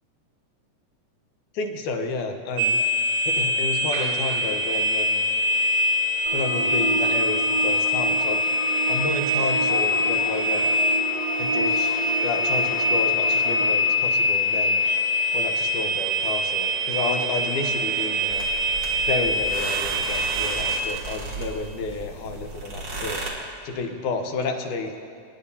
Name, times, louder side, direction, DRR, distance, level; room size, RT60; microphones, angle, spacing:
voice 1, 1.5-2.8 3.3-5.2 6.3-8.4 8.9-10.7 11.4-11.9 12.2-14.8 15.3-18.5 19.1-23.2 23.6-24.9, left 3 dB, 90° left, 5 dB, 2.4 m, -30 dB
sound 1, 2.6-20.8, left 1 dB, 85° right, 2.2 m, -24 dB
sound 2, 6.3-13.6, right 2 dB, 20° right, 1.4 m, -31 dB
sound 3, 18.3-23.3, right 2 dB, 45° right, 2.2 m, -34 dB
27.5 x 10.5 x 2.8 m, 2.5 s
omnidirectional pair, 3.5 m